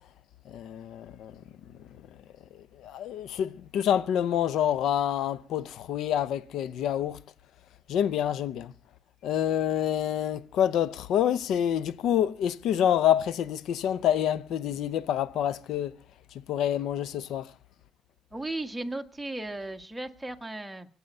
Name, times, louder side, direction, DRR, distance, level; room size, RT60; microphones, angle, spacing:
voice 1, 0.5-1.3 2.8-7.2 7.9-8.7 9.2-15.9 16.5-17.5, left 10 dB, 80° left, 0.7 m, -27 dB
voice 2, 18.3-20.9, right 2 dB, 10° right, 1.5 m, -36 dB
24.5 x 8.5 x 5.5 m
cardioid pair, 90°, 0 cm